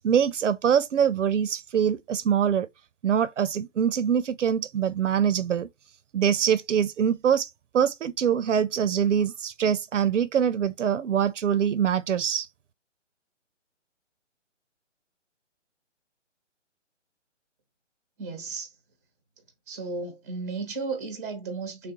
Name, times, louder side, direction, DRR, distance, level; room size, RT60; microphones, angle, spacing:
voice 1, 0.0-2.7 3.0-5.7 6.1-12.5, right 8 dB, 75° right, 0.5 m, -24 dB
voice 2, 18.2-18.7 19.7-21.9, right 4 dB, 15° right, 0.5 m, -34 dB
3.3 x 2.4 x 2.9 m
figure-of-eight pair, 150°, 37 cm